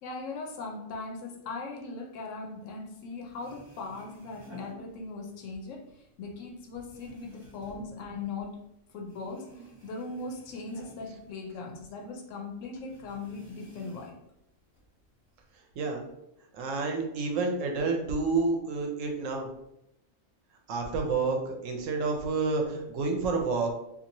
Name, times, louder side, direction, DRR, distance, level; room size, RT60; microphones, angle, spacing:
voice 1, 0.0-8.6 8.9-14.1, left 3 dB, 80° left, 1 dB, 1.0 m, -39 dB
sound 1, 3.0-3.1 3.2-5.5 5.8-8.7 9.0-12.0 12.3-12.4 12.9-14.3 14.7-15.5, right 1 dB, 20° right, 1.6 m, -52 dB
voice 2, 15.8-16.1 16.5-19.5 20.7-23.7, right 4 dB, 85° right, 2 dB, 1.0 m, -29 dB
2.9 x 2.5 x 2.6 m, 0.84 s
omnidirectional pair, 1.3 m